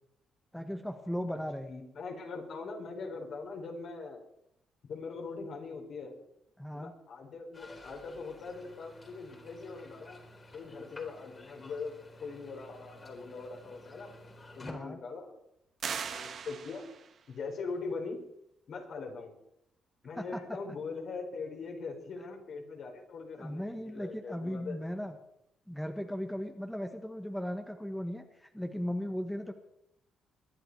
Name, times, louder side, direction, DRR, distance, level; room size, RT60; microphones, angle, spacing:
voice 1, 0.5-1.7 6.6-6.9 14.6-15.0 20.2-20.4 23.4-25.1 25.7-29.5, equal, 5° left, 6 dB, 1.5 m, -37 dB
voice 2, 1.7-4.2 4.9-6.1 6.7-10.2 10.5-14.1 14.5-15.4 16.1-16.8 17.3-18.2 18.7-19.3 20.0-24.8, left 4 dB, 60° left, 2 dB, 4.4 m, -41 dB
sound 1, 7.5-14.7, left 2 dB, 30° left, 3.9 m, -52 dB
sound 2, 15.8-17.2, right 6 dB, 55° right, 1.7 m, -39 dB
22.5 x 10.5 x 4.8 m, 0.76 s
cardioid pair, 90°, 0 cm